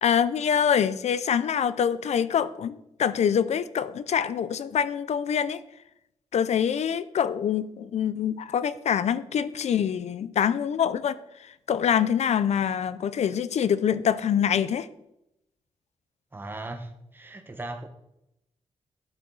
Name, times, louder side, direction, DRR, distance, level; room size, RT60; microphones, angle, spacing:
voice 1, 0.0-5.6 6.3-11.2 11.7-14.9, left 8 dB, 75° left, 0.6 m, -25 dB
voice 2, 16.3-17.9, right 2 dB, 20° right, 1.1 m, -38 dB
12.0 x 9.8 x 4.1 m
wide cardioid pair, 130°, 11 cm